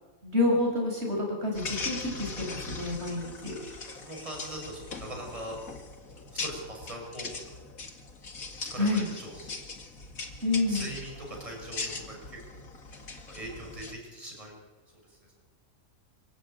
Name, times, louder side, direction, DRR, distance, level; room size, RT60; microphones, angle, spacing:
voice 1, 0.2-3.5 8.8-9.0 10.4-10.9, left 2 dB, 50° right, 0 dB, 6.2 m, -28 dB
sound 1, 1.5-13.9, left 3 dB, 80° left, 2.5 m, -40 dB
voice 2, 2.6-3.0 3.9-5.6 6.3-7.4 7.7-7.8 8.7-9.7 10.7-12.6 13.3-14.6 15.1-15.2, right 1 dB, 25° right, 0 dB, 5.9 m, -41 dB
25.5 x 15.0 x 9.0 m, 1.2 s
omnidirectional pair, 1.4 m